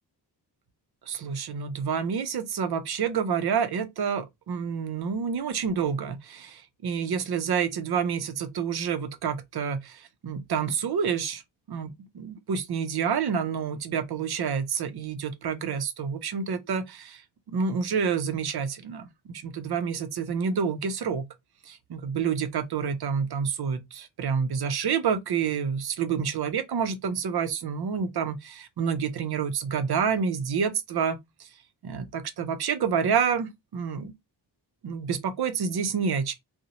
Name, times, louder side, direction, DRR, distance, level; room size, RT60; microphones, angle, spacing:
voice 1, 1.1-11.4 11.7-17.2 17.5-21.2 21.7-31.5 31.8-34.1 34.8-36.3, right 6 dB, 60° right, 0.5 m, -28 dB
2.6 x 2.0 x 2.8 m
wide cardioid pair, 165°, 43 cm